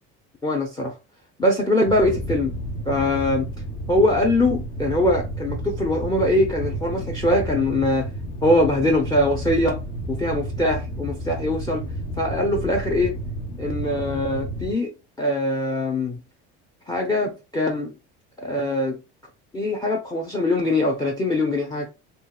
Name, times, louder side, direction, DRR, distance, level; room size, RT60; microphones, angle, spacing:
voice 1, 0.4-0.9 1.4-2.6 2.9-3.5 3.9-8.1 8.4-9.8 10.1-11.9 12.2-13.2 13.6-14.9 15.2-16.2 16.9-17.9 18.4-19.0 19.5-21.9, left 1 dB, 10° left, 0.5 m, -22 dB
sound 1, 1.9-14.7, right 1 dB, 70° left, 1.3 m, -31 dB
2.9 x 2.7 x 2.3 m
supercardioid pair, 100°, 33 cm